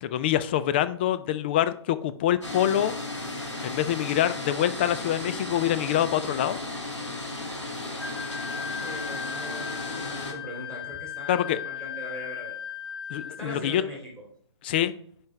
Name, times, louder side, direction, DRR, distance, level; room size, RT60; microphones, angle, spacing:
voice 1, 0.0-3.0 3.6-6.6 11.3-11.6 13.1-13.8 14.6-14.9, left 11 dB, 20° left, 14 dB, 0.3 m, -25 dB
sound 1, 2.4-10.3, left 2 dB, 85° left, 2.0 m, -35 dB
Wind instrument woodwind instrument, 8.0-13.5, left 8 dB, 60° left, 1.3 m, -36 dB
voice 2, 8.6-12.6 13.4-14.2, equal, 5° left, -3 dB, 2.4 m, -40 dB
10.5 x 4.8 x 3.2 m, 0.63 s
figure-of-eight pair, 140°, 15 cm